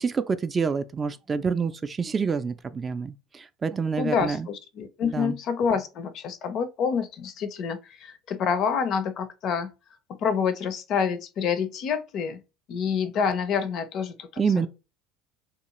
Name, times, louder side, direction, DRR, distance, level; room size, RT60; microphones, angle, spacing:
voice 1, 0.0-4.5 5.0-5.4 14.4-14.7, right 5 dB, 30° right, 0.3 m, -27 dB
voice 2, 4.0-9.7 10.1-12.4 12.7-14.3 14.6-14.7, left 6 dB, 55° left, 0.4 m, -27 dB
2.4 x 2.3 x 2.9 m
hypercardioid pair, 75°, 0 cm